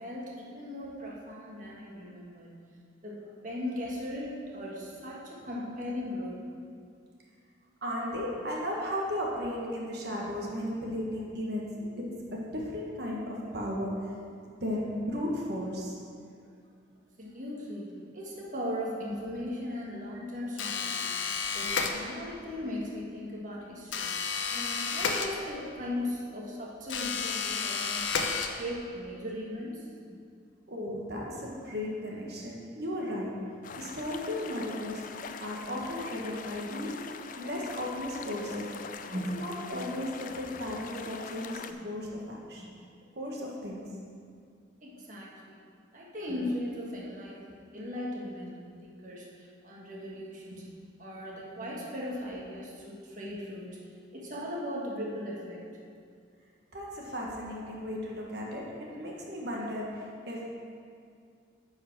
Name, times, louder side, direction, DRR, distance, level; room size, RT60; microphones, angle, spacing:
voice 1, 0.0-2.6 3.0-3.2 3.4-6.4 17.2-21.2 21.5-24.1 24.5-28.0 28.4-30.1 39.1-39.3 42.6-42.7 44.8-45.6 45.9-50.7 51.0-53.8 54.1-55.8, left 1 dB, 40° right, -4 dB, 1.6 m, -38 dB
voice 2, 7.8-14.1 14.6-15.9 20.1-20.3 30.7-33.4 33.7-35.1 35.4-37.0 37.4-38.8 39.3-42.6 43.2-43.9 56.7-60.5, left 1 dB, 60° right, -3 dB, 1.5 m, -35 dB
sound 1, 20.6-22.4 23.9-25.8 26.9-28.9, left 5 dB, 80° left, 0.7 m, -32 dB
sound 2, 33.6-41.7, left 5 dB, 45° left, 0.4 m, -43 dB
9.8 x 4.8 x 6.0 m, 2.2 s
head